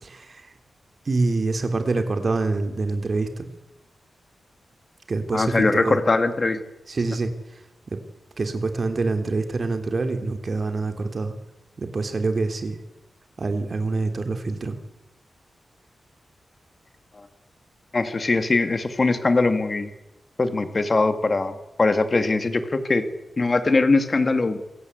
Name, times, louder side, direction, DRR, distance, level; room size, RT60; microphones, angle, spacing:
voice 1, 0.0-0.5 1.0-3.5 5.1-6.0 6.9-7.6 7.9-8.0 8.4-11.3 11.8-12.8 13.4-14.8, right 3 dB, 40° right, 7 dB, 3.3 m, -26 dB
voice 2, 5.3-6.6 17.2-17.3 17.9-19.9 20.4-23.0 23.4-24.6, left 3 dB, 35° left, 9 dB, 2.4 m, -21 dB
27.0 x 17.5 x 8.2 m, 0.97 s
wide cardioid pair, 125°, 0 cm